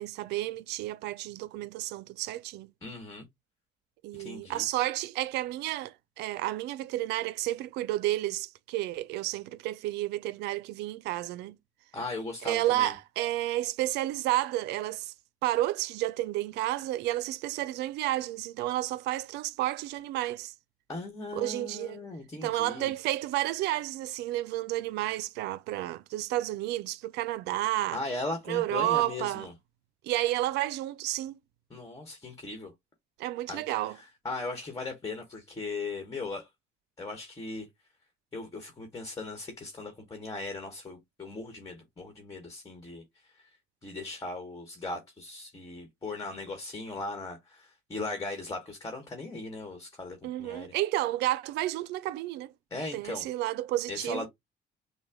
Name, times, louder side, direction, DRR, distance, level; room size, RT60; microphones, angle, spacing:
voice 1, 0.0-2.7 4.0-11.6 12.4-15.1 15.4-20.5 21.3-22.0 22.4-28.0 28.5-29.5 30.0-31.4 33.2-34.0 50.2-52.5 52.9-54.3, right 15 dB, 85° right, 0.5 m, -31 dB
voice 2, 2.8-3.2 4.1-4.6 11.9-12.9 20.9-22.9 27.9-29.5 31.7-32.7 33.5-33.6 33.9-36.5 37.0-37.7 38.3-43.5 43.8-50.7 52.7-53.3 53.9-54.3, left 2 dB, 20° left, 1.3 m, -38 dB
6.3 x 2.2 x 3.5 m
cardioid pair, 110°, 17 cm